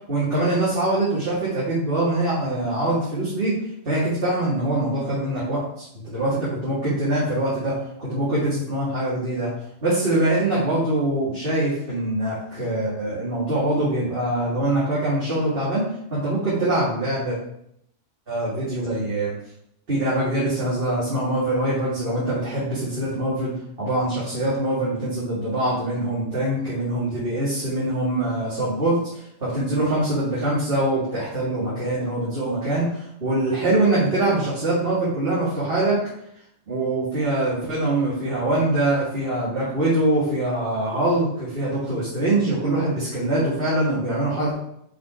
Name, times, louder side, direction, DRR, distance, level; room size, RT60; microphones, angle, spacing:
voice 1, 0.1-3.5 3.8-7.7 8.0-9.5 9.8-17.4 18.3-19.3 19.9-23.5 23.8-36.0 36.7-44.6, right 1 dB, 45° right, -10 dB, 2.6 m, -23 dB
7.9 x 5.0 x 4.5 m, 0.74 s
omnidirectional pair, 1.3 m